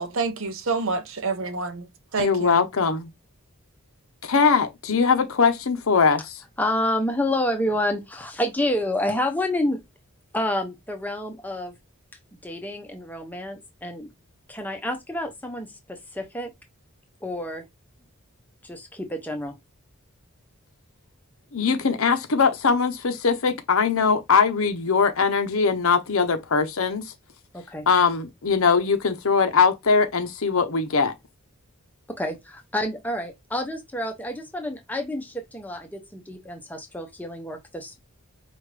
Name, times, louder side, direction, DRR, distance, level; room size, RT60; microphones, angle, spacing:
voice 1, 0.0-2.6, right 4 dB, 65° right, 0.7 m, -28 dB
voice 2, 2.2-3.1 4.2-6.4 21.5-27.0 27.9-31.1, left 5 dB, 70° left, 0.7 m, -21 dB
voice 3, 6.6-9.8 10.3-11.7 12.4-14.1 14.5-16.5 17.2-17.6 18.6-19.5 27.5-27.9 32.1-38.0, left 1 dB, 5° left, 0.7 m, -29 dB
5.0 x 2.4 x 3.3 m
head